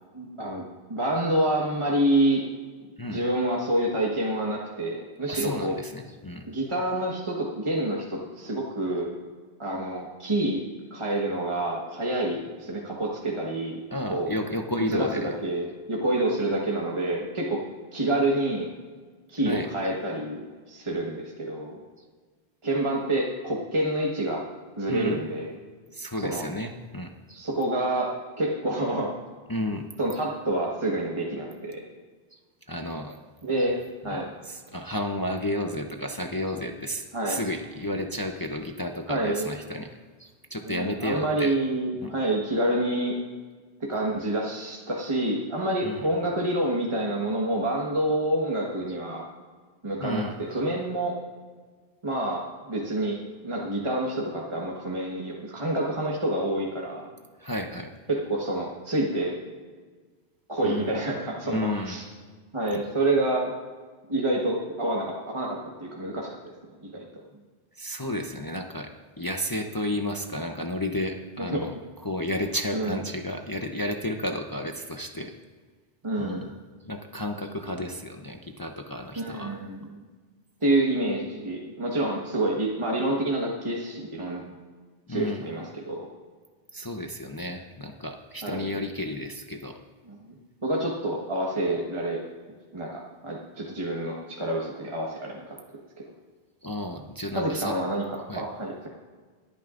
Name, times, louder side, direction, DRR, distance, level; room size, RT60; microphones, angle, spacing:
voice 1, 0.1-2.4 3.0-5.7 6.4-9.1 9.6-10.6 10.9-13.8 14.1-14.3 14.9-17.6 17.9-18.7 19.3-20.4 20.7-21.8 22.6-24.4 24.8-25.6 26.2-26.4 27.3-28.1 28.4-29.1 30.0-31.8 33.4-33.8 34.0-34.3 37.1-37.5 39.1-39.5 40.6-43.2 43.9-49.2 49.8-51.1 52.0-53.2 53.4-57.1 58.1-59.3 60.5-62.0 62.5-63.5 64.1-66.4 66.8-67.2 71.4-71.6 72.7-73.0 76.0-76.5 79.1-80.0 80.6-84.4 85.1-86.1 88.4-88.6 90.1-90.2 90.6-92.2 92.7-95.5 97.3-98.9, right 1 dB, 25° right, -3 dB, 1.4 m, -28 dB
voice 2, 5.3-6.4 13.9-15.3 19.4-19.7 24.9-25.2 25.9-27.4 29.5-29.9 32.3-32.4 32.7-33.2 34.1-39.9 40.2-41.5 42.0-42.1 45.8-46.1 50.0-50.6 57.4-57.9 60.6-60.9 61.4-62.0 62.7-62.8 67.8-68.9 69.2-71.7 72.0-75.3 76.2-76.5 76.9-79.5 85.1-85.4 86.7-89.8 96.6-97.7 98.3-98.4, left 1 dB, 25° left, 3 dB, 0.6 m, -32 dB
24.5 x 9.2 x 2.5 m, 1.5 s
omnidirectional pair, 1.1 m